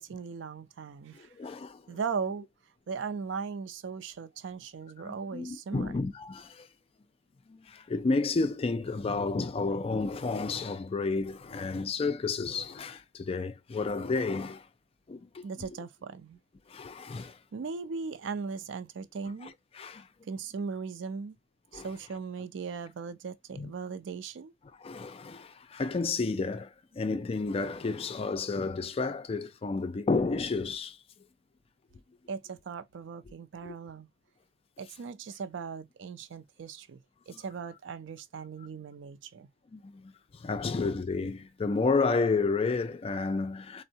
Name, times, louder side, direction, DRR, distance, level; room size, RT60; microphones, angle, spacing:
voice 1, 0.0-1.3 1.9-2.5 2.9-5.9 15.4-16.4 17.2-19.5 20.2-21.4 21.7-24.5 32.3-34.1 34.8-39.5, right 5 dB, 80° right, 0.4 m, -38 dB
voice 2, 1.2-2.0 5.0-6.7 7.5-14.7 15.1-15.4 16.7-17.4 19.4-20.1 21.7-21.9 23.5-23.7 24.8-31.0 33.6-33.8 37.3-37.4 39.7-43.8, left 3 dB, 30° left, 0.3 m, -31 dB
3.4 x 2.0 x 2.6 m
head